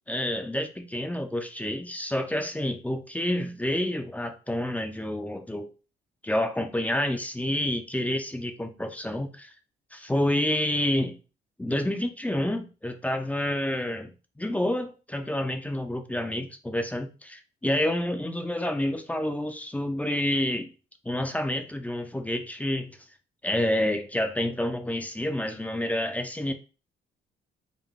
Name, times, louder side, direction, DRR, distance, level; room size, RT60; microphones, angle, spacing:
voice 1, 0.1-5.7 6.2-9.5 9.9-11.2 11.6-14.1 14.4-20.7 21.0-23.0 23.4-26.5, left 1 dB, 5° left, 7 dB, 0.6 m, -28 dB
3.9 x 2.2 x 3.5 m, 0.33 s
cardioid pair, 90°, 20 cm